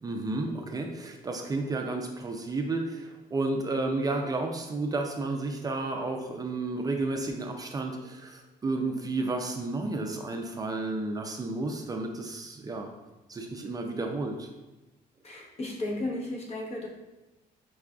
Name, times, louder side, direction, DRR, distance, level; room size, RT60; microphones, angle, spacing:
voice 1, 0.0-12.9 13.3-14.5, right 2 dB, 20° right, 3 dB, 0.4 m, -32 dB
voice 2, 15.2-16.9, left 2 dB, 40° left, 0 dB, 0.9 m, -34 dB
5.4 x 2.4 x 2.3 m, 1.0 s
cardioid pair, 110°, 17 cm